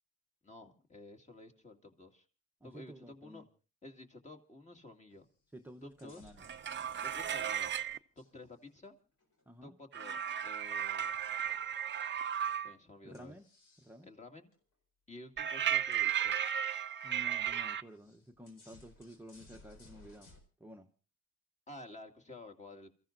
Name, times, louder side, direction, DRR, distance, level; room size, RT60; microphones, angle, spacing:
voice 1, 0.4-2.3 2.6-3.4 3.8-5.3 5.8-6.3 7.0-7.7 8.2-8.9 9.6-11.2 12.6-13.4 14.0-14.5 15.1-16.4 21.7-22.9, left 2 dB, 25° left, 3 dB, 2.2 m, -52 dB
voice 2, 2.6-3.5 5.5-6.5 9.5-9.8 13.0-13.5 13.8-14.1 17.0-20.3 20.6-20.9, equal, 5° right, 2 dB, 1.0 m, -52 dB
sound 1, 5.1-5.3 5.6-7.8 8.2-9.4 11.0-11.5 12.2-12.6 13.1-14.0 14.5-14.6 15.1-15.2 15.5-17.3 17.9-20.4, left 2 dB, 85° left, 4.3 m, -63 dB
sound 2, 6.4-8.0 9.9-12.7 15.4-17.8, right 9 dB, 40° right, 0.7 m, -35 dB
28.5 x 14.5 x 2.6 m, 0.34 s
cardioid pair, 90°, 30 cm